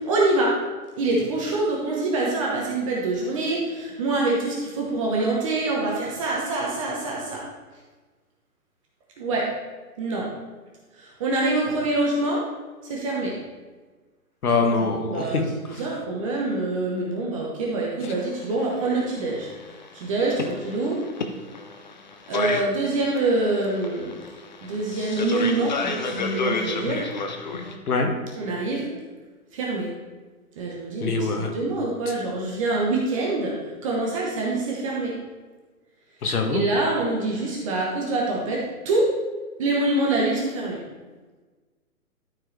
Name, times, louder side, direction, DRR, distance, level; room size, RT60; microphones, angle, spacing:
voice 1, 0.1-0.5 1.0-7.4 9.2-9.5 10.0-10.3 11.2-12.4 12.9-13.3 14.9-15.4 15.6-19.5 19.9-21.0 22.3-24.1 24.6-27.0 28.4-28.9 29.5-29.9 30.6-33.5 33.8-35.1 36.5-39.1 39.6-40.8, right 2 dB, 20° right, -3 dB, 0.9 m, -25 dB
voice 2, 14.4-15.4 15.7-15.8 18.0-18.1 27.9-28.1 31.0-31.5 32.1-32.2 36.2-36.6, left 4 dB, 75° left, 4 dB, 1.6 m, -24 dB
sound 1, 18.1-27.8, left 4 dB, 30° left, 0.5 m, -31 dB
12.5 x 4.5 x 3.2 m, 1.3 s
hypercardioid pair, 155°, 45 cm